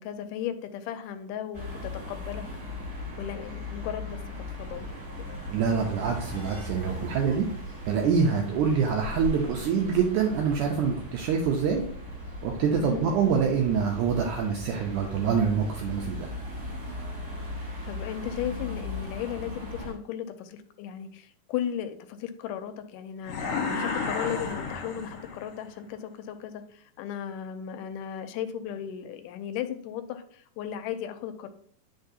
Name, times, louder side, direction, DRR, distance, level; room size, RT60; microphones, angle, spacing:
voice 1, 0.0-2.4 3.2-4.2 4.6-5.0 5.3-5.4 8.5-8.7 12.7-13.1 17.9-31.5, left 9 dB, 80° left, 8 dB, 2.1 m, -36 dB
sound 1, 1.5-19.9, left 2 dB, 25° right, 2.8 m, -38 dB
voice 2, 5.5-7.5 7.9-11.8 12.4-16.3, right 6 dB, 75° right, 1 dB, 2.1 m, -25 dB
sound 2, 23.2-25.6, left 4 dB, 60° left, 1.8 m, -32 dB
10.5 x 4.0 x 2.7 m, 0.62 s
omnidirectional pair, 3.9 m